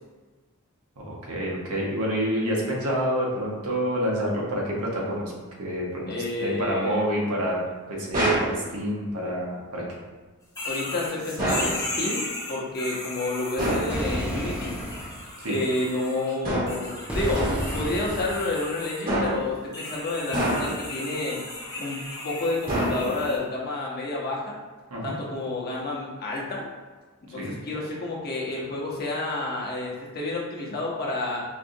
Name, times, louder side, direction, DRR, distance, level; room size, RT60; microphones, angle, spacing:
voice 1, 1.0-5.3 5.6-6.1 6.4-7.6 7.9-9.8 15.4-15.6 24.9-25.1 27.4-27.6, equal, 85° right, -3 dB, 0.9 m, -27 dB
voice 2, 6.1-7.2 10.6-14.7 15.5-17.5 17.7-21.4 21.8-24.6 25.0-26.7 27.3-31.4, left 2 dB, 45° left, -4 dB, 0.8 m, -30 dB
sound 1, 8.1-8.6 11.4-11.8 13.6-14.0 16.4-16.9 17.3-17.7 19.1-19.5 20.3-20.9 22.7-23.3, right 1 dB, 40° right, 1.2 m, -26 dB
sound 2, 10.6-16.3 16.7-19.0 19.7-23.4, left 2 dB, 15° left, 0.8 m, -36 dB
sound 3, 13.9-15.3 17.1-18.5, equal, 5° right, 0.3 m, -31 dB
4.6 x 2.4 x 2.6 m, 1.3 s
head